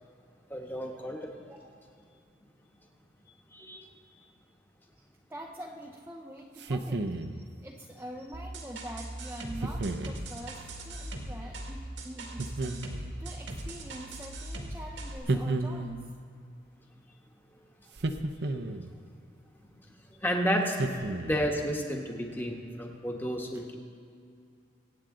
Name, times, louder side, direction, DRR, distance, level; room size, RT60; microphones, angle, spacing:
voice 1, 0.5-1.4 3.5-3.9 18.5-18.6 20.2-20.9 21.2-23.7, equal, 10° left, 1 dB, 1.2 m, -31 dB
voice 2, 1.4-1.7 5.0-5.1 5.3-16.1, right 1 dB, 10° right, -1 dB, 0.6 m, -45 dB
sound 1, 6.6-7.4 9.6-10.2 12.4-13.2 15.3-16.1 18.0-18.9 20.8-21.5, right 2 dB, 65° right, 0.7 m, -32 dB
sound 2, 8.3-15.2, right 1 dB, 90° right, 1.9 m, -40 dB
23.5 x 8.8 x 3.8 m, 2.5 s
head